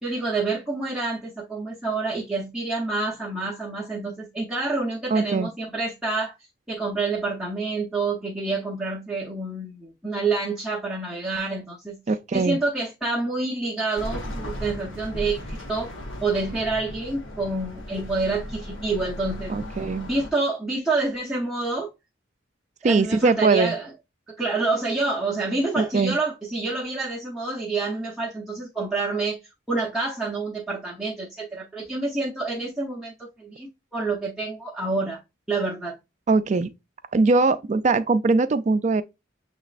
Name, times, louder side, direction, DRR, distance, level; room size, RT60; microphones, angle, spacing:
voice 1, 0.0-6.3 6.7-12.0 12.3-15.9 16.2-19.5 20.1-21.9 22.8-23.9 24.4-29.4 29.7-35.2 35.5-35.9, right 3 dB, 5° right, 0.7 m, -28 dB
voice 2, 5.1-5.5 12.1-12.6 19.5-20.1 22.8-23.7 25.8-26.2 36.3-36.7 37.1-39.0, right 3 dB, 35° right, 0.3 m, -21 dB
sound 1, 13.9-20.3, left 1 dB, 80° left, 1.1 m, -36 dB
6.9 x 3.0 x 2.4 m
head